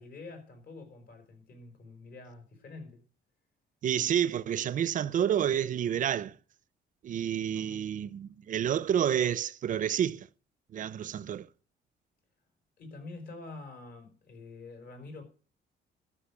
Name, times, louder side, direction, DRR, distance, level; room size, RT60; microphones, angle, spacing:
voice 1, 0.0-3.0 7.5-7.9 12.8-15.2, left 3 dB, 55° left, 4.8 m, -47 dB
voice 2, 3.8-6.4 7.0-10.3 10.7-11.5, right 9 dB, 45° right, 0.6 m, -29 dB
13.0 x 6.7 x 8.3 m
cardioid pair, 135°, 18 cm